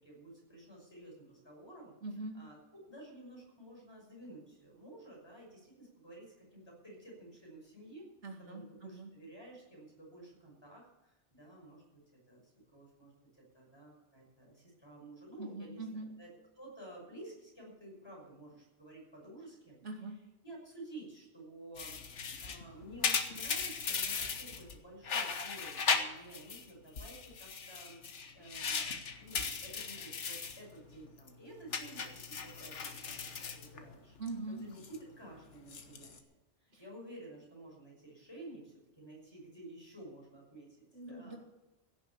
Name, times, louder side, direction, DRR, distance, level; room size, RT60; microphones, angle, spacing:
voice 1, 0.0-1.9 2.3-8.1 8.5-12.0 12.3-16.3 16.6-19.8 20.4-22.0 22.4-28.0 28.3-34.2 34.5-36.2 36.6-41.4, right 1 dB, 20° left, -2 dB, 6.1 m, -52 dB
voice 2, 2.0-2.4 8.2-9.1 15.4-16.1 19.8-20.2 34.2-34.6 36.7-36.8 40.9-41.4, right 2 dB, 90° right, 2 dB, 2.6 m, -42 dB
sound 1, 21.8-24.8 25.0-26.6 27.0-30.6 30.9-31.3 31.7-34.3 34.6-35.0 35.6-36.2, left 5 dB, 80° left, 1.5 m, -37 dB
16.5 x 7.1 x 8.5 m, 1.0 s
omnidirectional pair, 1.2 m